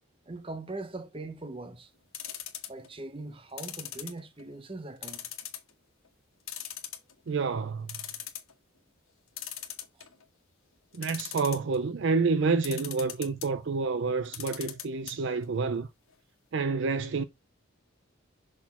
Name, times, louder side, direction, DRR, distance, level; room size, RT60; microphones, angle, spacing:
voice 1, 0.3-1.9 2.7-5.2, right 2 dB, 25° right, 0.7 m, -41 dB
sound 1, 2.1-2.9 3.6-4.5 5.0-5.7 6.0-6.1 6.5-7.3 7.6-7.7 7.9-8.5 9.4-10.2 10.9-11.8 12.6-13.5 14.2-15.1 15.4-15.5 15.8-15.9, left 11 dB, 75° left, 1.4 m, -39 dB
voice 2, 7.3-8.0 10.9-15.9 16.5-17.2, right 4 dB, 55° right, 0.4 m, -28 dB
6.1 x 4.3 x 4.2 m
head